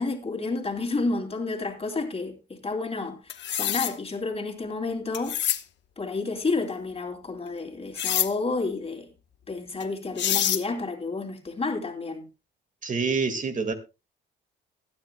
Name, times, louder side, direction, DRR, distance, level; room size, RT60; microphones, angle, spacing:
voice 1, 0.0-5.4 6.0-9.1 9.5-12.3, left 3 dB, 30° left, 2.7 m, -30 dB
sound 1, 3.3-3.9 5.1-5.6 8.0-8.3 9.8-9.9 10.2-10.6, left 10 dB, 65° left, 1.0 m, -26 dB
voice 2, 12.8-13.7, right 4 dB, 40° right, 1.9 m, -26 dB
21.0 x 9.5 x 2.2 m
cardioid pair, 90°, 20 cm